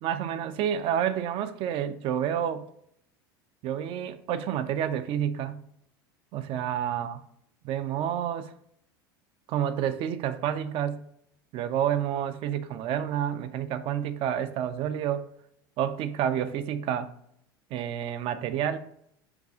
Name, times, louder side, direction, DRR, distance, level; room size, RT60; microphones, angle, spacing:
voice 1, 0.0-2.7 3.6-5.6 6.3-7.2 7.6-8.5 9.5-11.1 11.5-15.3 15.8-17.1 17.7-18.8, right 9 dB, 50° right, 0.4 m, -29 dB
6.8 x 2.3 x 2.5 m
hypercardioid pair, 85°, 12 cm